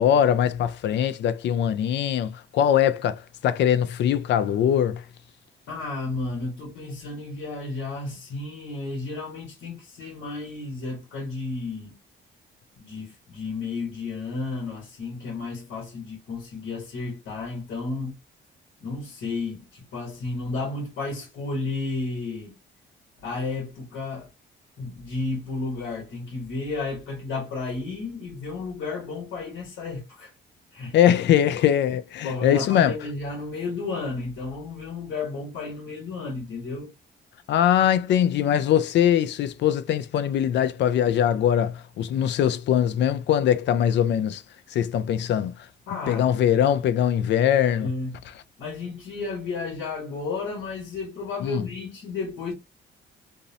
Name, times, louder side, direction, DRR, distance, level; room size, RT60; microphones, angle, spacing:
voice 1, 0.0-5.0 30.9-32.9 37.5-44.4 44.7-45.5 46.1-47.9 51.4-51.6, left 10 dB, 65° left, 0.4 m, -22 dB
voice 2, 5.7-12.0 12.8-18.2 18.8-22.6 23.2-24.3 24.8-30.3 30.7-31.0 32.2-36.9 45.9-46.4 47.8-48.2 48.6-52.5, left 3 dB, 80° left, 1.1 m, -32 dB
2.6 x 2.0 x 2.6 m
cardioid pair, 90°, 20 cm